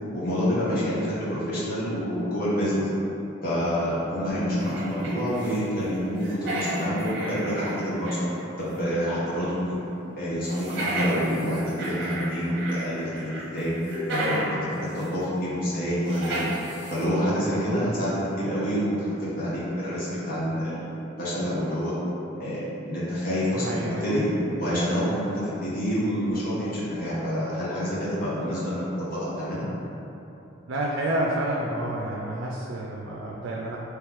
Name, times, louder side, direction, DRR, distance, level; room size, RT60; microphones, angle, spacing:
voice 1, 0.1-2.9 3.4-8.2 8.6-9.8 10.1-13.7 14.1-16.5 16.9-20.8 21.2-21.9 22.4-24.3 24.6-29.7, equal, 50° left, -10 dB, 1.2 m, -27 dB
sound 1, 4.6-5.7 5.9-8.3 8.7-8.8 10.5-12.8 13.1-14.6 15.0-15.1 16.1-17.1, right 1 dB, 60° right, 0.8 m, -33 dB
voice 2, 23.5-24.2 30.7-33.8, right 1 dB, 85° right, -3 dB, 0.4 m, -29 dB
3.2 x 3.0 x 3.6 m, 3.0 s
head